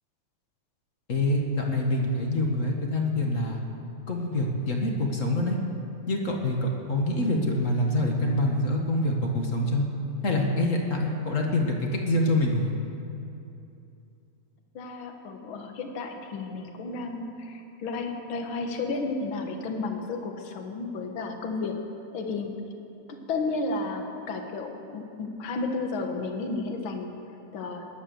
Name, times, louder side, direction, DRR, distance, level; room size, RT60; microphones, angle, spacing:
voice 1, 1.1-3.6 4.1-5.6 6.1-9.8 10.2-12.7, left 1 dB, 35° left, 1 dB, 1.3 m, -26 dB
voice 2, 14.7-21.8 22.1-22.5 23.3-27.1 27.5-27.9, left 3 dB, 50° left, 4 dB, 1.8 m, -32 dB
18.0 x 11.0 x 7.0 m, 2.8 s
omnidirectional pair, 3.4 m